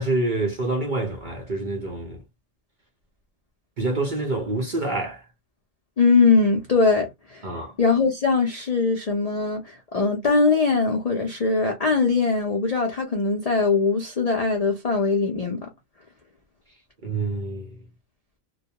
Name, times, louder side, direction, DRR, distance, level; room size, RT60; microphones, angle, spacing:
voice 1, 0.0-2.2 3.8-5.2 7.4-7.7 17.0-17.8, right 2 dB, 60° right, 0.5 m, -27 dB
voice 2, 6.0-7.5 7.8-15.7, left 4 dB, 75° left, 0.3 m, -21 dB
2.3 x 2.1 x 2.7 m
omnidirectional pair, 1.4 m